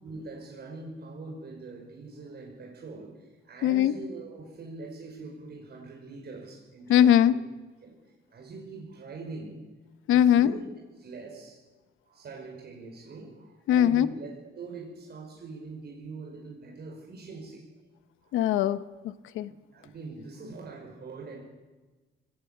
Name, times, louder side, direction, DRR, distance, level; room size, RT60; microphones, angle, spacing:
voice 1, 0.0-7.4 7.8-8.0 8.3-9.7 10.1-10.7 11.0-11.6 12.1-17.7 18.2-18.3 19.7-21.4, right 3 dB, 55° right, 0 dB, 5.7 m, -43 dB
voice 2, 3.6-3.9 6.9-7.3 10.1-10.5 13.7-14.1 18.3-19.5, left 10 dB, 90° left, 14 dB, 1.0 m, -21 dB
21.0 x 17.0 x 8.6 m, 1.2 s
cardioid pair, 90°, 20 cm